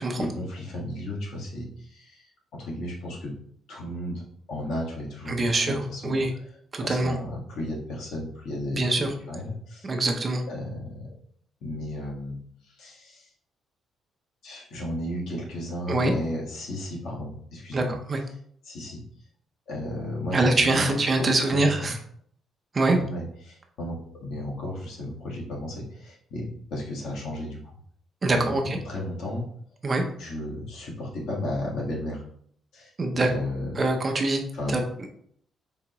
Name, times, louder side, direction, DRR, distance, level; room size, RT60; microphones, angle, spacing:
voice 1, 0.0-3.3 3.7-6.5 6.8-9.9 10.5-11.1 11.6-12.4 12.6-13.3 14.4-17.9 18.6-19.0 19.7-21.9 23.0-27.7 28.3-29.4 30.2-32.2 32.7-33.8 34.5-34.8, left 1 dB, 75° left, -2 dB, 1.5 m, -34 dB
voice 2, 5.3-6.3 6.7-7.1 8.7-9.1 9.8-10.4 15.9-16.1 17.7-17.8 18.1-18.2 20.3-22.0 22.7-23.0 28.2-28.8 29.8-30.0 33.0-33.3 33.8-34.4 34.7-34.8, right 2 dB, 25° right, 3 dB, 0.6 m, -24 dB
4.7 x 3.6 x 3.0 m, 0.64 s
cardioid pair, 170°, 0 cm